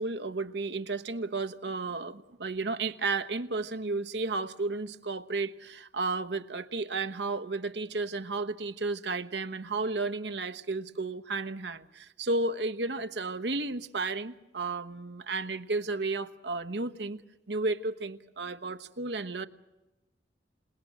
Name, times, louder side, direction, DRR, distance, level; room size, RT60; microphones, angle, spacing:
voice 1, 0.0-17.2 17.5-19.5, right 3 dB, 70° right, 1.1 m, -33 dB
27.5 x 19.0 x 7.7 m
head